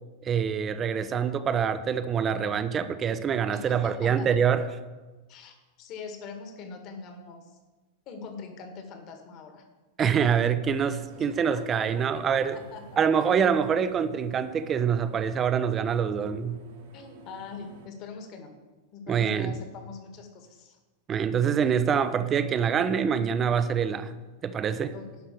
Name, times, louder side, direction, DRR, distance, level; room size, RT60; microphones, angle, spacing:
voice 1, 0.2-4.6 10.0-12.6 13.0-16.6 19.1-19.6 21.1-24.2 24.4-24.9, right 7 dB, 25° right, 12 dB, 0.7 m, -25 dB
voice 2, 3.5-4.3 5.3-7.6 8.1-9.7 11.1-11.3 11.5-12.2 12.5-12.8 16.9-18.5 18.9-20.8 24.9-25.1, left 5 dB, 40° left, 5 dB, 1.9 m, -43 dB
sound 1, 10.7-17.9, right 3 dB, 60° right, 1.7 m, -50 dB
11.5 x 5.7 x 6.8 m, 1.2 s
figure-of-eight pair, 90°, 0 cm